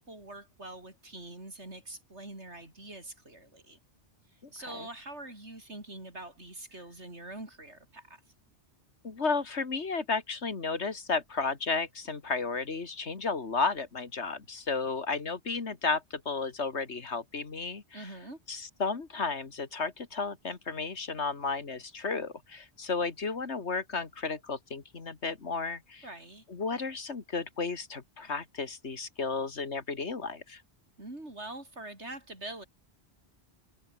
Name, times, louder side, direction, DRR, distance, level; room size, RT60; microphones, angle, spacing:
voice 1, 0.0-3.8 4.3-8.2 17.9-18.4 26.0-26.4 31.0-32.6, right 2 dB, 90° right, 6.4 m, -44 dB
voice 2, 9.0-18.1 18.5-26.1 26.5-30.6, left 4 dB, 85° left, 2.4 m, -33 dB
omnidirectional pair, 1.1 m